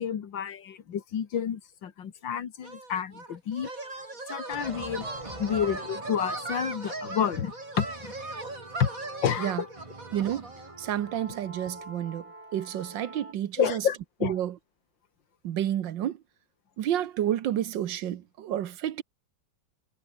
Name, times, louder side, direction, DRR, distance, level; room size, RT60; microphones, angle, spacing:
voice 1, 0.0-3.7 4.3-5.1 5.4-8.1 8.8-8.9 9.2-9.7 13.6-14.3, left 8 dB, 85° left, 2.3 m, -30 dB
sound 1, 2.6-10.7, right 2 dB, 45° right, 5.5 m, -39 dB
sound 2, 4.5-13.3, right 2 dB, 15° right, 2.3 m, -45 dB
voice 2, 10.1-13.8 14.2-14.5 15.4-16.2 16.8-19.0, right 11 dB, 85° right, 1.7 m, -30 dB
omnidirectional pair, 2.0 m